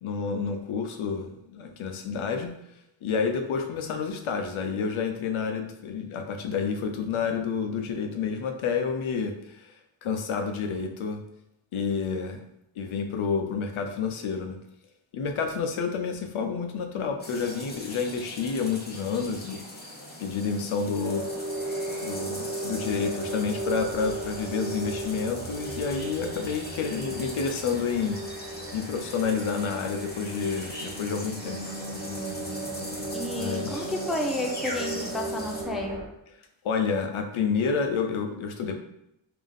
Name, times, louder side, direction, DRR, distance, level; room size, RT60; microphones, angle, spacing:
voice 1, 0.0-2.5 3.0-9.7 10.0-11.2 11.7-12.4 12.8-14.6 15.1-19.6 20.2-21.3 22.0-28.2 28.7-31.7 33.3-33.9 36.6-38.8, left 5 dB, 80° left, 5 dB, 0.7 m, -29 dB
sound 1, 17.2-35.6, left 1 dB, 20° left, 0.8 m, -41 dB
sound 2, 21.0-36.1, right 2 dB, 45° right, 0.7 m, -36 dB
voice 2, 33.1-36.0, left 1 dB, ahead, 1 dB, 0.4 m, -31 dB
3.6 x 2.8 x 3.6 m, 0.82 s
wide cardioid pair, 115°, 48 cm